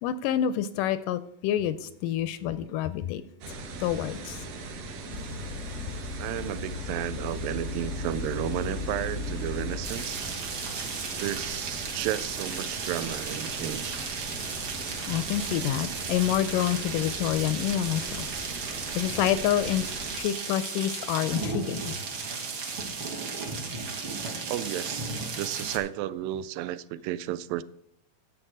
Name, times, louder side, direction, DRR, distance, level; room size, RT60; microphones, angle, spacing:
voice 1, 0.0-3.2 3.8-4.4 15.1-18.3 19.0-19.8 20.1-21.9, left 11 dB, 80° left, 2.0 m, -27 dB
sound 1, 3.4-20.2, right 3 dB, 65° right, 2.7 m, -40 dB
sound 2, 5.1-10.1, left 3 dB, 50° left, 1.1 m, -36 dB
voice 2, 6.2-10.3 11.2-14.0 18.7-18.9 24.5-27.6, right 12 dB, 85° right, 2.2 m, -33 dB
sound 3, 9.8-25.8, right 4 dB, 45° right, 1.8 m, -35 dB
11.0 x 7.9 x 4.9 m
omnidirectional pair, 4.1 m